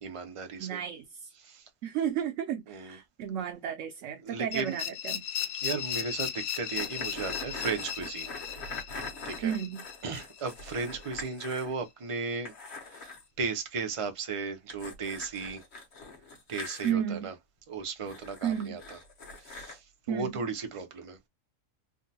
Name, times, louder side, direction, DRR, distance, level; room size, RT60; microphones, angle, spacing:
voice 1, 0.0-0.8 1.4-1.6 2.7-3.0 4.2-4.8 5.6-8.3 9.2-9.5 10.0-12.5 12.9-13.1 13.4-15.6 16.5-17.3 17.7-19.0 19.4-21.2, right 4 dB, 55° right, 0.3 m, -35 dB
voice 2, 0.6-1.3 1.8-5.2 9.4-9.8 16.8-17.3 18.4-18.8 20.1-20.5, right 9 dB, 70° right, 0.9 m, -33 dB
sound 1, 4.5-11.3, left 9 dB, 80° left, 1.1 m, -37 dB
sound 2, 6.8-11.7 12.0-12.1 12.4-13.3 14.7-16.9 18.1-19.8, left 3 dB, 50° left, 1.3 m, -43 dB
3.5 x 2.2 x 2.7 m
omnidirectional pair, 1.5 m